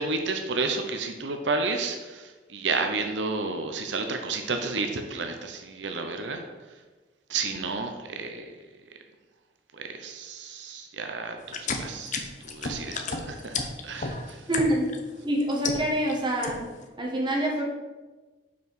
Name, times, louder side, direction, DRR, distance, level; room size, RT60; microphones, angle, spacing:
voice 1, 0.0-6.5 7.3-8.5 9.7-13.6 13.8-14.5, right 3 dB, 85° right, 5 dB, 0.8 m, -31 dB
sound 1, 11.4-15.0 15.4-16.1 16.4-16.8, left 4 dB, 45° left, 0.7 m, -32 dB
voice 2, 14.5-14.9 15.2-16.6 17.0-17.7, right 1 dB, 25° right, -1 dB, 1.5 m, -26 dB
5.8 x 4.7 x 6.2 m, 1.2 s
head